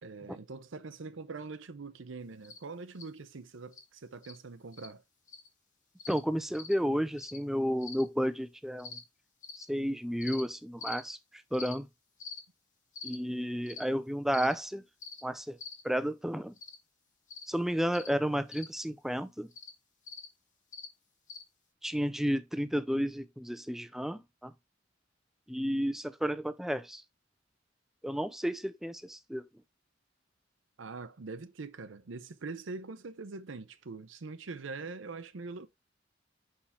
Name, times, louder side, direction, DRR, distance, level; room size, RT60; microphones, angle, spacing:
voice 1, 0.0-5.0 30.8-35.7, right 3 dB, 90° right, 0.7 m, -43 dB
sound 1, 2.4-2.6 3.0-3.1 3.7-3.8 4.2-4.4 4.7-4.9 5.3-5.5 6.0-6.2 6.5-6.7 7.2-7.4 7.8-8.0 8.8-9.0 9.4-9.6 10.2-10.4 10.8-11.0 11.5-11.7 12.2-12.4 12.9-13.2 13.7-13.8 14.3-14.5 15.0-15.2 15.6-15.8 16.6-16.8 17.3-17.5 17.9-18.1 18.5-18.7 19.5-19.7 20.1-20.3 20.7-20.9 21.3-21.4, left 5 dB, 45° left, 1.4 m, -44 dB
voice 2, 6.1-9.0 9.5-11.2 11.5-11.9 13.0-14.8 15.2-15.6 15.8-16.5 17.5-19.5 21.8-24.5 25.5-27.0 28.0-29.5, equal, ahead, 0.4 m, -32 dB
5.6 x 4.9 x 3.5 m
head